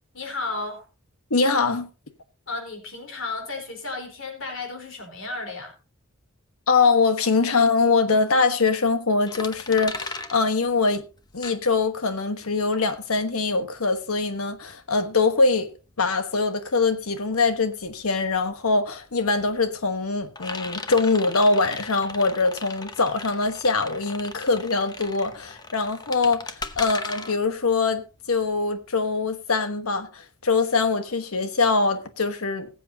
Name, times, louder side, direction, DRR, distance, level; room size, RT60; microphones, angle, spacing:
voice 1, 0.1-0.8 2.5-5.7, left 3 dB, 60° left, 4.0 m, -33 dB
voice 2, 1.3-1.9 6.7-11.0 11.3-15.7 16.0-28.0 28.3-32.7, left 4 dB, 85° left, 1.2 m, -23 dB
sound 1, 9.3-12.1 12.5-28.9, left 3 dB, 20° left, 0.8 m, -38 dB
20.0 x 7.8 x 2.8 m
head